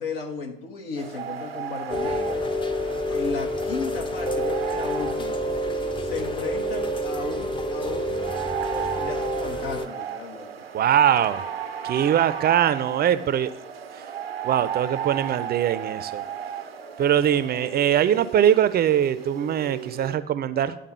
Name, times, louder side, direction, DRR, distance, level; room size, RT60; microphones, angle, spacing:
voice 1, 0.0-2.5 3.1-5.5 6.0-10.5, left 5 dB, 70° left, 4 dB, 1.1 m, -35 dB
sound 1, 1.0-20.2, right 9 dB, 85° right, 0.5 m, -35 dB
Rain, 1.9-9.9, left 1 dB, 15° left, 0.6 m, -28 dB
voice 2, 10.7-11.4 11.8-13.5 14.4-16.2 17.0-20.8, right 10 dB, 35° right, 14 dB, 0.5 m, -22 dB
11.0 x 3.6 x 5.5 m, 0.82 s
figure-of-eight pair, 55°, 29 cm